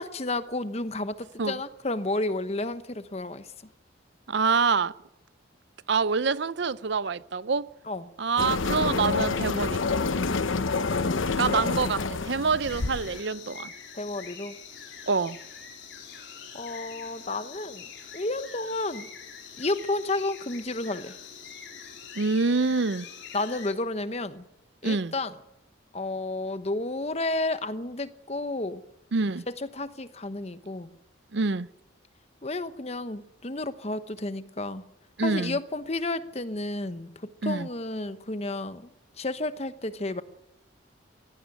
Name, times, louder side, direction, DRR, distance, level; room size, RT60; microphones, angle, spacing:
voice 1, 0.0-3.5 7.9-8.1 13.9-14.6 16.5-17.9 18.1-19.1 19.6-21.1 23.3-24.4 24.8-25.3 25.9-28.8 29.5-30.9 32.4-34.8 35.2-37.1 37.4-38.9 39.2-40.2, left 2 dB, 35° left, 1.0 m, -31 dB
voice 2, 4.3-4.9 5.9-7.7 8.2-9.8 11.4-13.7 15.1-15.4 22.2-23.1 24.8-25.1 29.1-29.4 31.3-31.7 35.2-35.6 37.4-37.7, right 4 dB, 65° right, 0.6 m, -26 dB
sound 1, 8.4-13.2, left 4 dB, 90° left, 0.9 m, -27 dB
sound 2, 12.6-23.7, left 6 dB, 65° left, 3.9 m, -44 dB
17.5 x 16.5 x 9.1 m
head